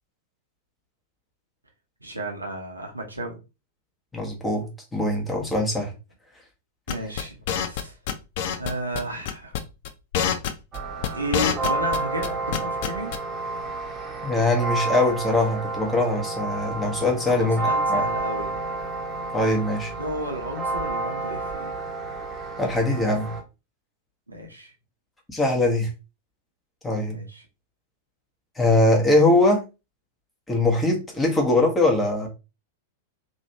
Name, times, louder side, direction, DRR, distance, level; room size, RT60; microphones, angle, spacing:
voice 1, 2.0-3.4 6.9-8.0 8.6-9.5 11.1-13.1 17.3-18.6 20.0-21.7 24.3-24.7 27.1-27.4, right 1 dB, 85° right, 0.9 m, -33 dB
voice 2, 4.1-5.9 14.2-17.6 17.9-18.0 19.3-19.9 22.6-23.3 25.3-25.9 26.8-27.2 28.6-29.6 30.5-32.3, left 2 dB, 10° left, 1.1 m, -22 dB
sound 1, 6.9-7.8 8.1-8.7 9.0-9.1 9.3-9.6 9.8-12.0 12.2-13.2, left 9 dB, 50° left, 0.5 m, -25 dB
sound 2, 10.7-23.4, right 2 dB, 20° right, 1.0 m, -30 dB
3.0 x 2.6 x 2.8 m
figure-of-eight pair, 95°, 0 cm